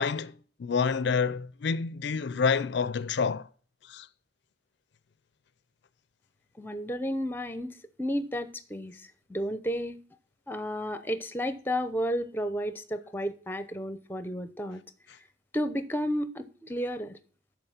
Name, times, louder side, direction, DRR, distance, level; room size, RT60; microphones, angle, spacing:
voice 1, 0.0-3.5 3.9-4.1, left 5 dB, 60° left, 0.4 m, -28 dB
voice 2, 6.6-10.0 10.5-14.8 15.5-17.2, equal, 10° left, 0.7 m, -32 dB
12.0 x 4.8 x 5.7 m
head